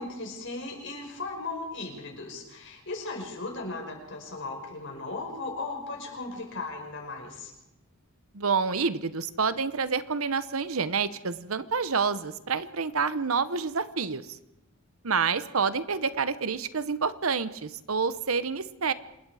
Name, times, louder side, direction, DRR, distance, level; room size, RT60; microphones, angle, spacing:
voice 1, 0.0-7.5, left 3 dB, 60° left, 2 dB, 5.4 m, -37 dB
voice 2, 8.3-14.4 15.0-18.9, right 5 dB, 80° right, 14 dB, 1.0 m, -28 dB
26.5 x 21.0 x 5.0 m, 0.87 s
head